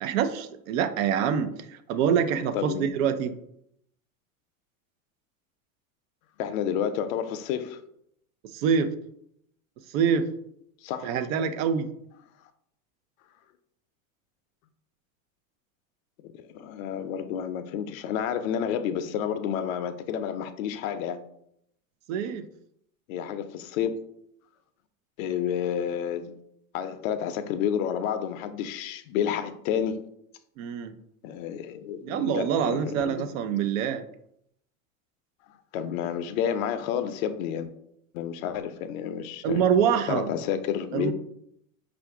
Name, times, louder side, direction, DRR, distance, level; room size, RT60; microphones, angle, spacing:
voice 1, 0.0-3.3 8.5-8.9 9.9-10.3 11.0-11.9 22.1-22.4 30.6-30.9 32.0-34.0 39.4-40.3 40.9-41.1, right 7 dB, 75° right, 0.6 m, -25 dB
voice 2, 2.5-2.9 6.4-7.8 10.8-11.2 16.2-21.2 23.1-24.0 25.2-26.4 26.7-30.0 31.2-33.3 35.7-37.7 38.1-39.6 40.1-41.1, left 8 dB, 75° left, 0.5 m, -30 dB
4.8 x 2.5 x 3.5 m
supercardioid pair, 105°, 41 cm